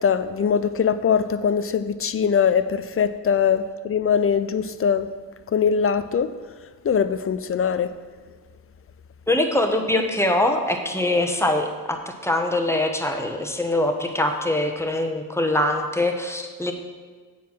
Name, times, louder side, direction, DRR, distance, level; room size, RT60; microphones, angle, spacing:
voice 1, 0.0-5.1 5.5-6.3 6.8-7.9, left 7 dB, 30° left, 12 dB, 0.5 m, -22 dB
voice 2, 9.3-16.7, left 1 dB, 5° left, 4 dB, 1.2 m, -23 dB
8.2 x 4.6 x 6.0 m, 1.5 s
hypercardioid pair, 50°, 47 cm